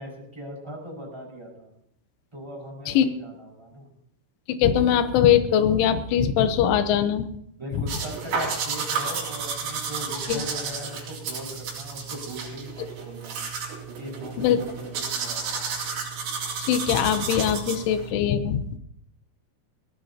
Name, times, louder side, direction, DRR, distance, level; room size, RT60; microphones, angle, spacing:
voice 1, 0.0-1.7 2.3-3.9 7.6-13.5 13.9-15.8, equal, 5° right, -2 dB, 5.1 m, -39 dB
voice 2, 4.5-7.3 10.3-10.4 14.4-14.6 16.7-18.8, left 9 dB, 90° left, 9 dB, 3.4 m, -21 dB
sound 1, 7.9-18.1, right 5 dB, 75° right, 5.8 m, -32 dB
19.0 x 18.0 x 2.9 m, 0.71 s
omnidirectional pair, 5.4 m